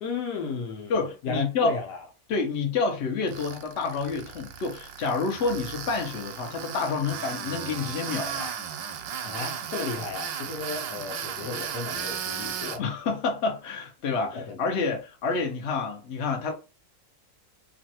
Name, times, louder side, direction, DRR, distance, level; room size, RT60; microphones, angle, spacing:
voice 1, 0.0-2.0 9.2-12.8 14.3-14.6 14.9-15.0, left 4 dB, 65° left, 1.2 m, -34 dB
voice 2, 0.9-1.8 2.3-8.5 12.8-16.5, left 4 dB, 50° left, 0.9 m, -28 dB
Tools, 3.3-12.8, right 8 dB, 85° right, 1.3 m, -35 dB
3.0 x 2.4 x 2.8 m
omnidirectional pair, 2.0 m